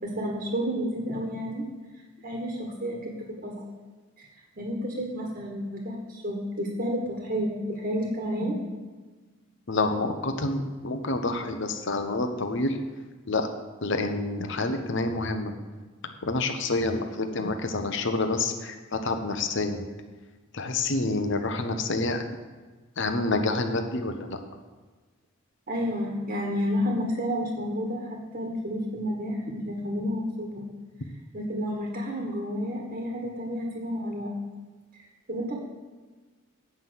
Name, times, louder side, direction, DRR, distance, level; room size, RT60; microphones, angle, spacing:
voice 1, 0.0-1.7 2.2-3.5 4.2-4.3 4.6-8.6 25.7-30.6 31.3-34.3 35.3-35.6, equal, 45° right, -1 dB, 1.5 m, -30 dB
voice 2, 9.7-12.8 13.3-13.5 13.8-15.5 16.2-19.9 20.5-22.2 23.0-24.4, left 2 dB, 60° left, 6 dB, 1.0 m, -28 dB
8.8 x 5.8 x 7.8 m, 1.4 s
head